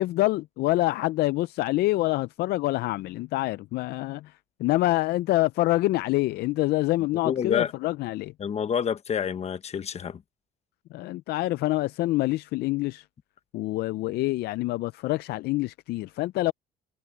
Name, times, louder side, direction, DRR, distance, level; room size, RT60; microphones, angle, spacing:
voice 1, 0.0-4.3 4.6-8.3 10.9-13.0 13.5-16.5, left 18 dB, 70° left, 0.4 m, -26 dB
voice 2, 7.2-7.7 8.4-10.2, left 7 dB, 40° left, 1.1 m, -28 dB
cardioid pair, 110°, 17 cm